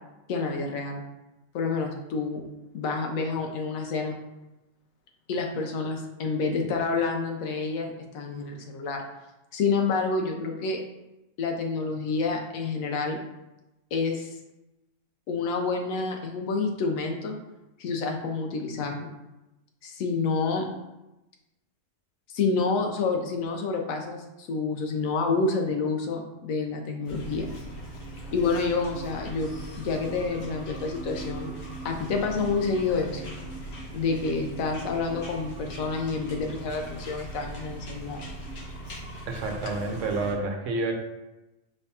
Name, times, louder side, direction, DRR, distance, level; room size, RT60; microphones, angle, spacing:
voice 1, 0.3-1.0 1.5-2.4 2.7-4.2 5.3-9.0 9.5-10.8 11.4-13.2 13.9-14.3 15.3-17.4 17.8-19.1 19.8-20.7 22.3-27.5 28.3-31.5 31.8-33.3 33.9-38.2, left 4 dB, 80° left, 2 dB, 1.1 m, -28 dB
sound 1, 27.0-40.3, right 1 dB, 60° left, 1.4 m, -40 dB
voice 2, 39.3-40.9, right 3 dB, 70° right, 3 dB, 1.1 m, -29 dB
5.3 x 3.5 x 2.8 m, 0.97 s
omnidirectional pair, 1.4 m